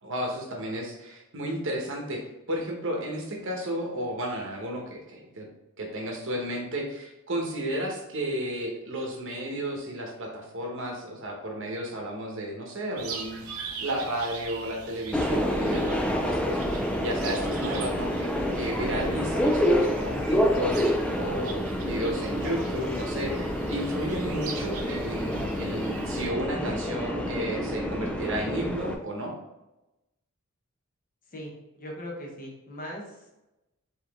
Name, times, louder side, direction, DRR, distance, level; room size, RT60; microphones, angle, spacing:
voice 1, 0.0-2.2 2.5-5.5 5.8-29.3, right 1 dB, 60° right, 1 dB, 1.0 m, -33 dB
sound 1, 13.0-26.3, right 4 dB, 75° right, 0.6 m, -42 dB
Subway metro underground, 15.1-28.9, equal, 5° left, 0.3 m, -28 dB
voice 2, 31.3-33.3, equal, 40° left, -1 dB, 1.1 m, -40 dB
4.8 x 3.0 x 3.5 m, 0.96 s
head